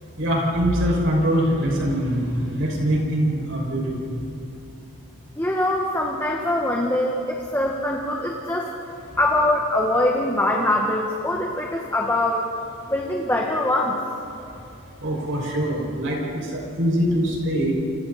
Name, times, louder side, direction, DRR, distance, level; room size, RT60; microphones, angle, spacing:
voice 1, 0.2-4.0 15.0-17.7, equal, 55° right, -2 dB, 6.2 m, -23 dB
voice 2, 5.3-8.7 9.2-12.5 12.9-14.0, left 1 dB, 10° left, -1 dB, 1.4 m, -23 dB
29.5 x 27.5 x 4.3 m, 2.8 s
head